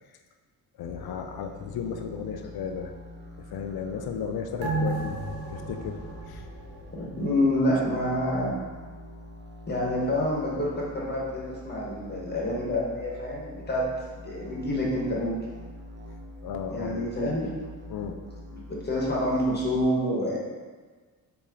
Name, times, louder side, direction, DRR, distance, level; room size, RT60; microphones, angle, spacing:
voice 1, 0.8-2.9 3.4-5.2 5.5-6.0 6.3-6.4 7.6-7.8 16.4-17.1 17.9-18.2, left 7 dB, 70° left, 5 dB, 0.5 m, -34 dB
sound 1, 0.8-19.8, left 1 dB, 30° right, 0.8 m, -45 dB
sound 2, 4.6-7.5 7.9-8.0, right 2 dB, 70° right, 1.1 m, -33 dB
voice 2, 6.9-8.5 9.7-13.8 14.1-15.4 16.7-17.5 18.5-20.4, left 1 dB, 25° left, -4 dB, 1.4 m, -27 dB
4.1 x 2.9 x 3.7 m, 1.4 s
cardioid pair, 70°, 38 cm